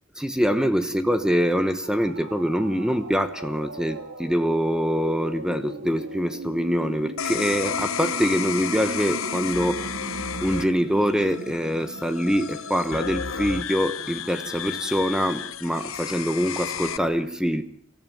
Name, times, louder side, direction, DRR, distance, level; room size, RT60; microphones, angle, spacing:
voice 1, 0.2-10.0 10.4-17.6, equal, 5° right, 1.0 m, -24 dB
sound 1, 1.8-13.5, right 2 dB, 85° right, 3.4 m, -39 dB
sound 2, 7.2-17.0, left 8 dB, 85° left, 1.0 m, -32 dB
25.0 x 14.5 x 9.1 m
head